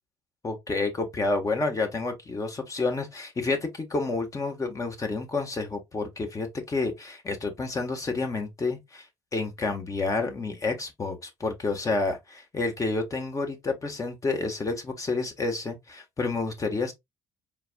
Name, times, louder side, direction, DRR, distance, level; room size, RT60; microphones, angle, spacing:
voice 1, 0.4-9.1 9.3-16.9, left 3 dB, 30° left, 1.6 m, -29 dB
4.5 x 3.6 x 2.4 m
hypercardioid pair, 55°, 10 cm